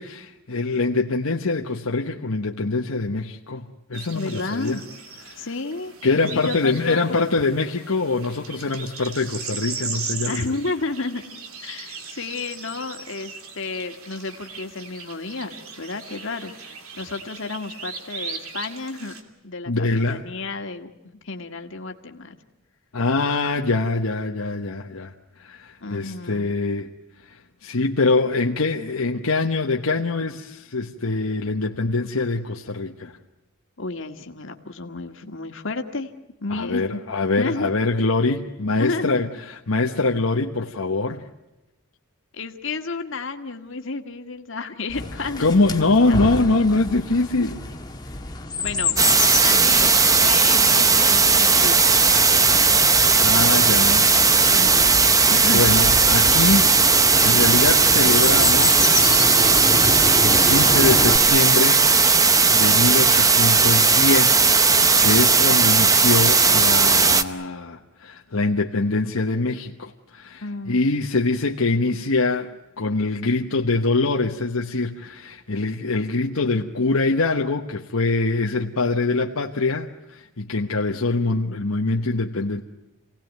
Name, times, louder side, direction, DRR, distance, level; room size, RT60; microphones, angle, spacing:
voice 1, 0.0-4.8 5.4-5.5 6.0-10.5 19.7-20.2 22.9-26.9 27.2-33.2 36.5-41.3 45.4-47.6 53.2-54.1 55.5-56.7 57.2-58.9 60.2-61.8 62.5-82.6, left 3 dB, 75° left, 1 dB, 1.2 m, -24 dB
sound 1, 3.9-19.2, right 5 dB, 75° right, 2.8 m, -38 dB
voice 2, 4.1-4.8 5.4-5.9 6.3-7.2 10.3-11.2 11.6-19.1 19.4-20.9 21.2-22.4 25.8-26.5 33.8-36.1 36.4-37.0 37.4-37.7 38.8-39.3 42.3-45.6 46.1-46.2 48.6-49.1 49.4-51.9 54.5-55.0 55.3-55.6 70.4-70.8, left 3 dB, 60° left, 5 dB, 1.9 m, -31 dB
Chirp tweet, 44.9-61.2, left 3 dB, 20° left, 1.6 m, -29 dB
sound 2, 49.0-67.2, right 4 dB, 15° right, 0.8 m, -16 dB
27.5 x 18.0 x 9.3 m, 1.0 s
head